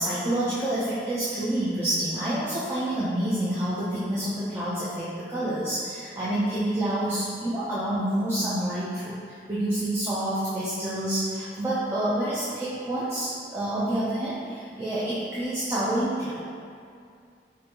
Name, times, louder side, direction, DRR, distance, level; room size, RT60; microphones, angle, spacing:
voice 1, 0.0-16.4, right 1 dB, 15° right, -10 dB, 0.4 m, -28 dB
4.9 x 2.5 x 2.8 m, 2.3 s
head